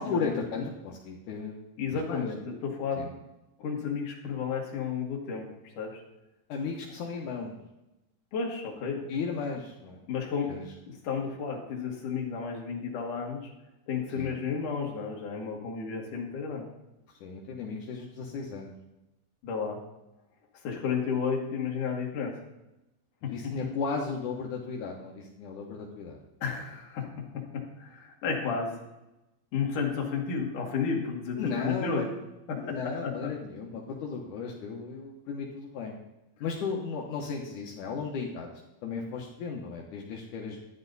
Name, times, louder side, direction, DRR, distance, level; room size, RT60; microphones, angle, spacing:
voice 1, 0.0-1.6 1.9-2.3 3.0-3.1 6.5-7.5 9.1-10.0 10.5-10.6 14.2-14.3 17.1-18.7 23.2-26.2 31.4-32.1 32.5-36.0 36.4-38.5 38.8-40.6, left 5 dB, 80° left, -1 dB, 1.8 m, -35 dB
voice 2, 1.8-3.1 3.6-5.5 5.8-6.0 8.3-9.1 10.1-10.6 11.0-13.4 13.9-16.7 19.4-19.8 20.6-22.4 23.2-23.5 26.4-27.1 27.3-28.7 29.5-32.1 32.5-33.3, left 6 dB, 55° left, 0 dB, 2.9 m, -32 dB
11.5 x 11.0 x 4.0 m, 0.95 s
omnidirectional pair, 5.4 m